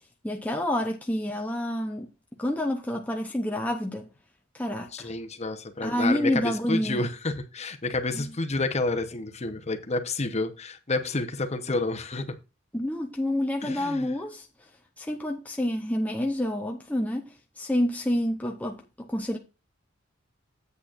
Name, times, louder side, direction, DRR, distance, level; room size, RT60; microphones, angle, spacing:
voice 1, 0.2-2.1 2.4-4.1 4.5-5.1 5.8-7.1 8.1-8.3 12.7-14.5 15.0-19.4, left 1 dB, 10° left, 0.7 m, -28 dB
voice 2, 4.9-12.2 13.6-14.1, left 2 dB, 35° left, 0.9 m, -29 dB
8.6 x 8.2 x 2.5 m
head